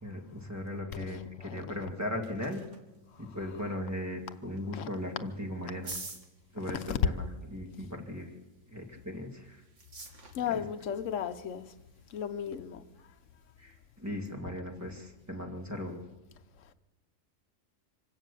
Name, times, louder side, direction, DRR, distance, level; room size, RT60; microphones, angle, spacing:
voice 1, 0.0-2.6 3.2-6.0 6.5-8.3 8.7-9.6 10.5-10.6 13.6-16.0, left 1 dB, 10° right, 2.2 m, -38 dB
voice 2, 0.9-1.6 4.7-4.9 6.9-7.0 10.3-11.7 12.1-12.8, left 9 dB, 70° left, 1.2 m, -35 dB
sound 1, 1.8-14.3, right 3 dB, 65° right, 2.5 m, -52 dB
25.5 x 16.5 x 6.9 m
omnidirectional pair, 1.4 m